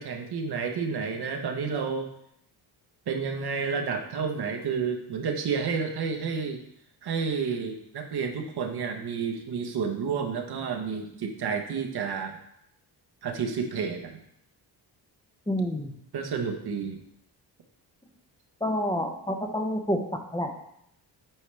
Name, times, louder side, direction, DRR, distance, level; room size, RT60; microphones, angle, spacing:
voice 1, 0.0-2.1 3.1-6.6 7.0-12.4 13.2-14.2 16.1-17.0, right 5 dB, 65° right, 4 dB, 1.1 m, -30 dB
voice 2, 15.5-15.9 18.6-20.0 20.3-20.5, equal, 10° left, 3 dB, 0.8 m, -28 dB
8.9 x 4.6 x 3.4 m, 0.74 s
cardioid pair, 85°, 43 cm